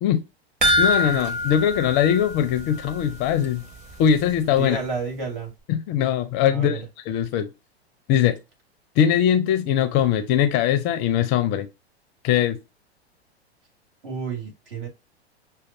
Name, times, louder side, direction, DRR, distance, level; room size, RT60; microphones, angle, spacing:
sound 1, 0.6-3.2 3.4-3.5 4.0-4.1, left 1 dB, 25° right, 1.2 m, -24 dB
voice 1, 0.8-3.7 4.0-4.8 5.7-7.5 8.1-8.4 9.0-11.7 12.2-12.6, left 9 dB, 35° left, 0.4 m, -21 dB
voice 2, 4.6-5.5 6.5-6.8 14.0-14.9, right 5 dB, 60° right, 2.3 m, -30 dB
6.2 x 2.3 x 2.6 m
figure-of-eight pair, 95°, 32 cm